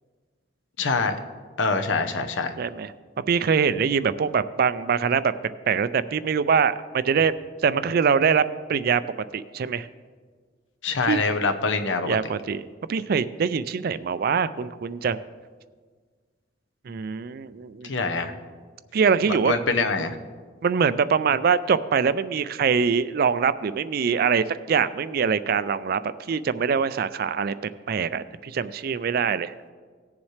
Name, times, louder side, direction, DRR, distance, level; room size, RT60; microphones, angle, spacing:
voice 1, 0.8-1.2 1.6-2.5 10.8-12.2 17.8-18.3 19.3-20.2, left 4 dB, 85° left, 7 dB, 0.9 m, -25 dB
voice 2, 2.6-2.9 3.3-5.3 5.7-7.3 7.6-8.4 8.7-9.0 9.3-9.9 11.0-11.2 12.0-15.2 16.9-17.9 18.9-19.5 20.6-27.5 27.9-29.5, right 6 dB, 55° right, 15 dB, 0.4 m, -23 dB
18.0 x 7.2 x 3.2 m, 1.5 s
head